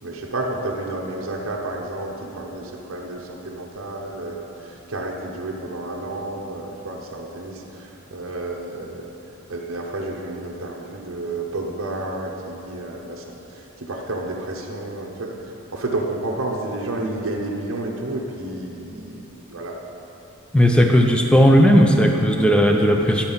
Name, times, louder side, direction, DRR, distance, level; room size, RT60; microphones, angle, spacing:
voice 1, 0.0-9.1 9.5-19.8, right 2 dB, 65° right, -1 dB, 0.8 m, -31 dB
voice 2, 20.5-23.3, equal, 5° left, 2 dB, 0.4 m, -15 dB
9.6 x 4.3 x 5.6 m, 2.9 s
head